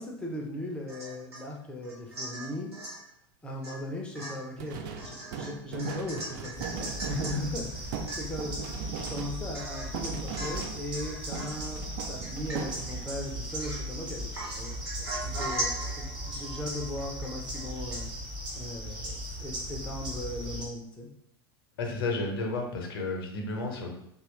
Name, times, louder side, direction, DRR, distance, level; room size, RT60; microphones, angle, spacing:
voice 1, 0.0-2.7 3.4-8.6 9.0-18.1 18.5-21.1, left 1 dB, 10° left, 0 dB, 0.5 m, -38 dB
Domestic sounds home sounds / Chink clink / Drip, 0.9-1.5 1.8-3.0 3.6-3.8 4.1-7.4 7.7-7.8 8.1-8.6 9.0-9.1 9.5-10.0 10.3-10.7 10.9-11.6 12.2-12.9 13.4-14.0 14.3-17.6 17.9-18.0, right 1 dB, 75° right, 1.1 m, -39 dB
sound 1, 4.6-11.1 11.3-13.2, right 6 dB, 50° right, 0.4 m, -39 dB
sound 2, 6.5-20.6, right 1 dB, 30° right, 1.2 m, -38 dB
voice 2, 21.8-24.0, left 2 dB, 60° left, 1 dB, 0.7 m, -32 dB
2.8 x 2.4 x 3.1 m, 0.74 s
figure-of-eight pair, 85°, 13 cm